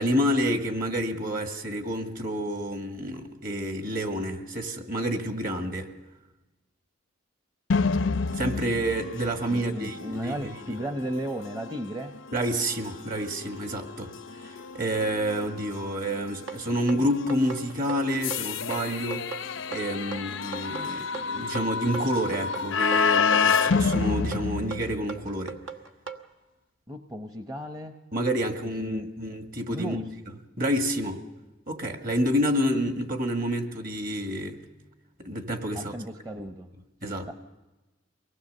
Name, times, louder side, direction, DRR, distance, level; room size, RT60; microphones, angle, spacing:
voice 1, 0.0-5.9 8.3-10.8 12.3-19.4 19.7-25.6 28.1-30.0 30.6-31.3 31.7-34.6 35.2-35.9 37.0-37.3, equal, 50° right, 5 dB, 1.9 m, -29 dB
sound 1, 7.7-25.4, left 5 dB, 85° left, 0.7 m, -30 dB
voice 2, 9.5-12.2 26.9-27.9 28.8-29.1 29.7-30.1 35.7-36.7 37.0-37.3, equal, 20° right, 5 dB, 0.8 m, -35 dB
sound 2, 16.5-26.2, right 6 dB, 80° right, 1.4 m, -38 dB
23.5 x 19.0 x 6.7 m, 1.1 s
head